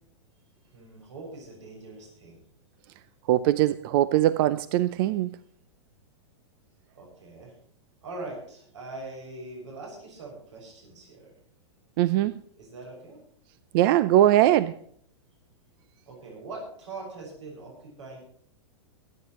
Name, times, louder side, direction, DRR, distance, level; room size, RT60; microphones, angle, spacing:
voice 1, 0.7-2.4 7.0-7.5 8.0-11.3 12.6-13.2 16.1-18.2, right 2 dB, 80° right, 6.7 m, -42 dB
voice 2, 3.3-5.3 12.0-12.4 13.7-14.8, right 13 dB, 50° right, 0.6 m, -21 dB
23.5 x 9.8 x 3.1 m
hypercardioid pair, 125°, 15 cm